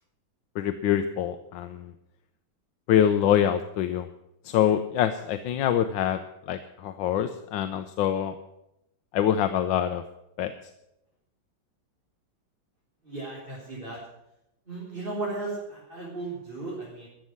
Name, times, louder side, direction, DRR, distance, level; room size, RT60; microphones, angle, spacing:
voice 1, 0.6-1.9 2.9-4.1 4.4-6.2 6.5-8.3 9.1-10.0 10.4-10.5, left 10 dB, 75° left, 9 dB, 1.4 m, -25 dB
voice 2, 13.0-14.0 14.7-17.1, right 3 dB, 25° right, -7 dB, 4.4 m, -35 dB
14.0 x 7.5 x 9.6 m, 0.85 s
omnidirectional pair, 2.2 m